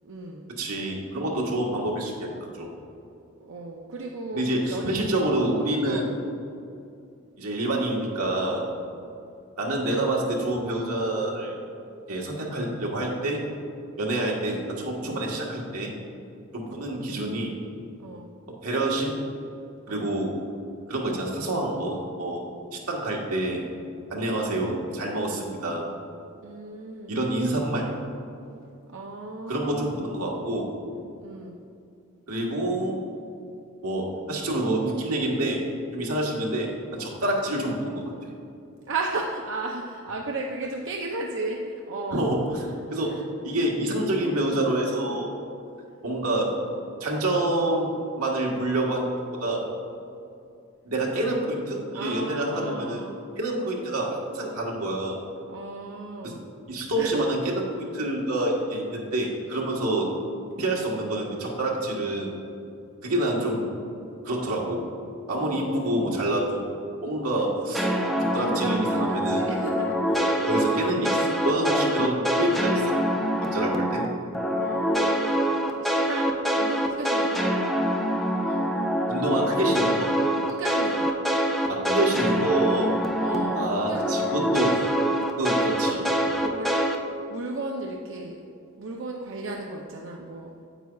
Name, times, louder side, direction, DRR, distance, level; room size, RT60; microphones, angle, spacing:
voice 1, 0.0-0.5 3.4-4.9 5.9-6.1 18.0-18.3 19.9-20.1 26.4-27.2 28.9-30.0 31.2-31.6 38.9-42.3 43.1-43.2 51.9-53.2 55.5-56.4 57.0-57.2 65.4-66.4 67.7-68.0 68.3-70.5 70.8-71.0 74.6-75.4 75.8-77.5 78.4-78.8 80.5-81.1 83.2-84.2 86.4-86.9 87.3-88.4 88.8-90.5, right 2 dB, 60° right, 0 dB, 0.5 m, -35 dB
voice 2, 0.6-2.3 2.6-2.7 4.3-6.1 7.4-8.7 9.6-11.5 12.1-13.4 14.0-15.9 16.5-17.5 18.6-19.2 19.9-20.3 20.9-22.4 22.7-23.6 24.1-25.8 27.1-27.9 29.5-30.7 32.3-33.0 33.8-35.6 35.9-38.0 42.1-45.3 46.0-46.6 47.0-47.9 48.2-49.1 49.4-49.6 50.8-53.0 53.4-55.2 56.2-56.3 56.7-60.1 60.6-62.3 63.0-63.7 64.2-64.9 65.3-66.6 67.0-67.9 68.3-69.4 70.5-72.9 73.4-74.0 79.1-80.1 81.7-83.0 83.5-84.8 85.4-86.3, right 1 dB, 85° right, -2 dB, 1.4 m, -27 dB
sound 1, 67.7-74.1 74.3-83.7 83.9-87.0, equal, ahead, 0.5 m, -25 dB
9.0 x 8.2 x 2.3 m, 2.6 s
head